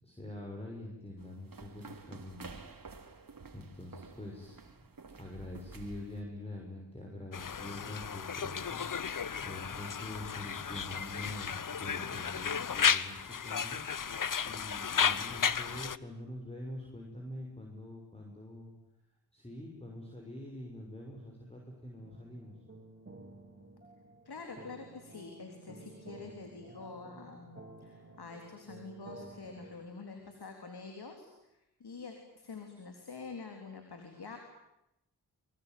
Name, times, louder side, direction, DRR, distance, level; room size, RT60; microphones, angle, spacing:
voice 1, 0.0-2.6 3.5-4.6 5.2-13.8 14.4-18.7 19.3-22.5, left 1 dB, 15° left, 0 dB, 6.3 m, -45 dB
sound 1, 1.2-6.2, right 4 dB, 55° right, 3.0 m, -51 dB
Conversation, 7.3-16.0, left 7 dB, 55° left, 1.0 m, -33 dB
sound 2, 22.0-29.7, right 2 dB, 25° right, 6.1 m, -52 dB
voice 2, 24.3-34.4, left 4 dB, 70° left, 4 dB, 3.7 m, -47 dB
24.5 x 23.0 x 9.5 m, 0.87 s
cardioid pair, 45°, 40 cm